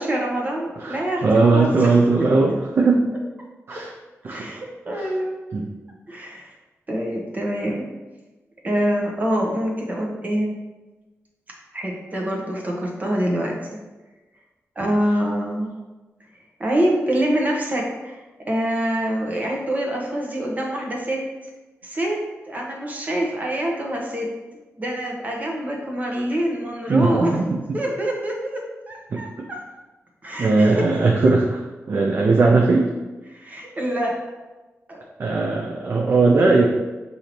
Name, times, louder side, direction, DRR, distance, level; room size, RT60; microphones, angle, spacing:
voice 1, 0.0-2.2 2.8-2.9 4.3-5.4 6.1-6.5 6.9-7.8 8.6-10.6 11.7-13.6 14.8-15.7 16.6-18.2 18.5-21.2 21.8-24.3 24.8-27.3 27.7-29.6 30.2-30.8 33.3-34.1 34.9-35.0, right 1 dB, 30° right, -1 dB, 0.9 m, -25 dB
voice 2, 0.8-3.1 3.7-3.9 4.2-4.6 4.9-5.1 5.5-5.7 14.8-14.9 26.9-27.8 29.1-29.5 30.4-32.9 35.2-36.6, right 3 dB, 50° right, 0 dB, 0.5 m, -19 dB
6.6 x 2.7 x 3.0 m, 1.2 s
wide cardioid pair, 135°, 5 cm